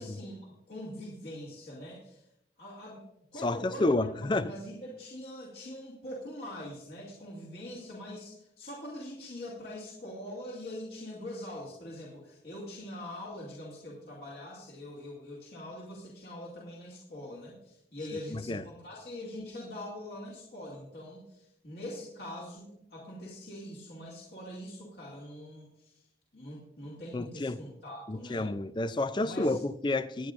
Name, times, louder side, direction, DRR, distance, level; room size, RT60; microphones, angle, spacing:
voice 1, 0.0-2.2 2.6-3.0 3.3-26.0 26.3-28.5 29.2-29.6, left 1 dB, 55° left, 2.6 m, -43 dB
voice 2, 3.4-4.5 18.3-18.6 27.1-27.6 28.1-30.3, left 2 dB, 25° left, 0.4 m, -30 dB
20.5 x 9.6 x 2.6 m
head